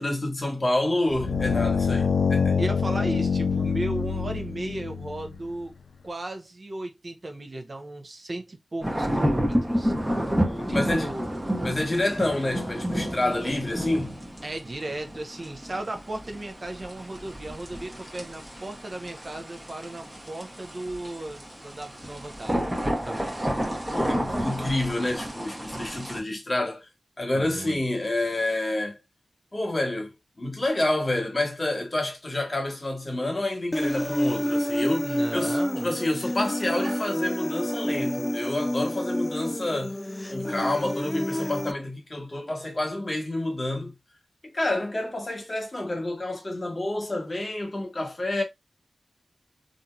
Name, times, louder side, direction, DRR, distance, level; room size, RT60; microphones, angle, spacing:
voice 1, 0.0-2.6 10.3-11.1 11.6-14.2 23.9-26.9 27.2-29.0 29.5-30.1 30.4-40.0 40.3-43.9 44.4-48.4, left 1 dB, 40° left, 1.2 m, -28 dB
sound 1, 1.1-5.5, left 5 dB, 85° left, 0.4 m, -25 dB
voice 2, 2.6-5.7 6.0-9.9 10.7-11.3 13.3-13.4 14.4-23.5 27.3-27.8 35.0-35.9 36.8-37.0 37.7-37.8, right 2 dB, 45° right, 0.7 m, -36 dB
sound 2, 8.8-26.2, equal, 15° right, 0.9 m, -30 dB
Human voice, 33.7-41.7, left 1 dB, 15° left, 0.3 m, -28 dB
2.8 x 2.6 x 2.2 m
cardioid pair, 50°, 0 cm